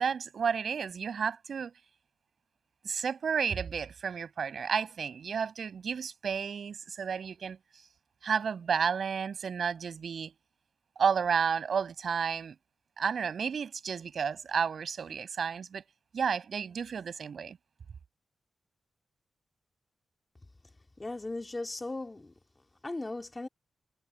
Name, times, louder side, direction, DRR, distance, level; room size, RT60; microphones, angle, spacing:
voice 1, 0.0-1.7 2.8-7.6 8.2-10.3 11.0-12.5 13.0-15.8 16.1-17.6, right 6 dB, 65° right, 6.6 m, -31 dB
voice 2, 21.0-22.3 22.8-23.5, left 2 dB, 20° left, 2.2 m, -37 dB
wide cardioid pair, 145°, 0 cm